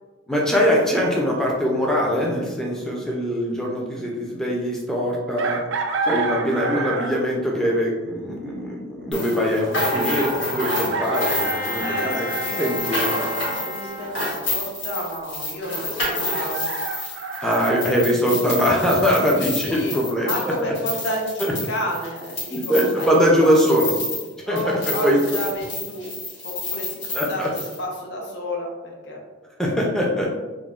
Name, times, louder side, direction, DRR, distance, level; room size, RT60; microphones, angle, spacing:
voice 1, 0.3-5.6 6.0-12.3 12.6-13.0 17.4-20.7 21.4-21.5 22.5-24.0 24.4-25.2 27.1-27.5 29.6-30.3, equal, 5° left, -3 dB, 0.5 m, -22 dB
Chicken rooster, 5.4-7.3 9.0-9.1 10.6-12.5 16.0-17.9, right 4 dB, 70° right, 0.3 m, -29 dB
sound 1, 9.1-24.3 24.6-27.8, left 1 dB, 85° left, 1.2 m, -29 dB
Bowed string instrument, 10.9-14.6, left 1 dB, 20° left, 1.0 m, -33 dB
voice 2, 11.8-12.7 13.1-13.3 13.6-16.8 17.7-17.8 19.4-23.5 24.5-26.1 26.4-29.2, equal, 60° left, 0 dB, 0.6 m, -31 dB
3.7 x 2.1 x 2.3 m, 1.2 s
head